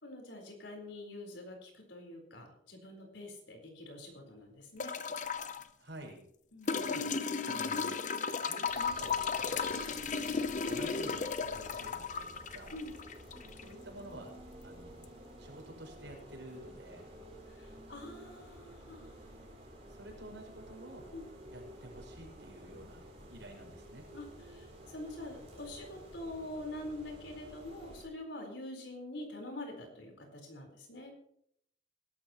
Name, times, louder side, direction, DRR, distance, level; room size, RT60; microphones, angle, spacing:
voice 1, 0.0-5.0 6.5-6.9 12.7-12.9 17.5-19.2 21.1-21.3 24.1-31.1, left 1 dB, 85° left, 2 dB, 4.3 m, -45 dB
sound 1, 4.8-5.6 6.7-13.7 15.0-15.1, left 5 dB, 45° left, 0.7 m, -35 dB
voice 2, 5.8-6.2 6.6-7.1 7.4-8.0 8.5-10.4 10.7-12.8 13.6-14.3 14.6-15.1 15.4-17.1 19.9-21.1 21.5-24.0, right 1 dB, 90° right, 0 dB, 5.6 m, -50 dB
sound 2, 8.6-28.1, right 1 dB, 35° right, 4.7 m, -52 dB
21.0 x 12.0 x 3.0 m, 0.71 s
head